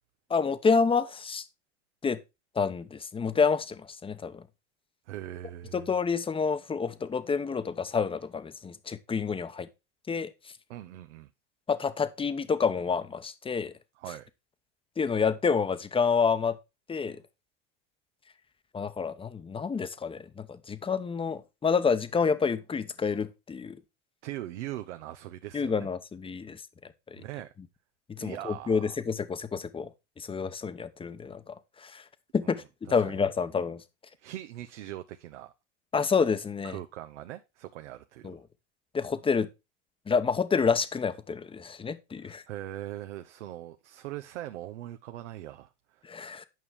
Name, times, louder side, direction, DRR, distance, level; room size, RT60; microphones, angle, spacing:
voice 1, 0.3-1.4 2.0-2.2 2.6-4.4 5.7-9.7 10.1-10.3 11.7-13.7 15.0-16.6 16.9-17.2 18.7-23.8 25.5-26.6 28.2-29.9 30.2-31.5 31.8-32.0 32.3-33.8 35.9-36.8 38.2-38.4 38.9-39.5 40.1-42.4 46.1-46.4, left 5 dB, 15° left, 0.8 m, -28 dB
voice 2, 5.1-5.8 10.7-11.3 14.0-14.3 24.2-25.9 27.2-27.5 28.1-29.0 32.4-32.6 32.9-33.2 34.2-35.5 36.6-38.3 42.2-46.0, right 14 dB, 80° right, 0.8 m, -41 dB
9.4 x 5.5 x 4.7 m
hypercardioid pair, 100°, 35 cm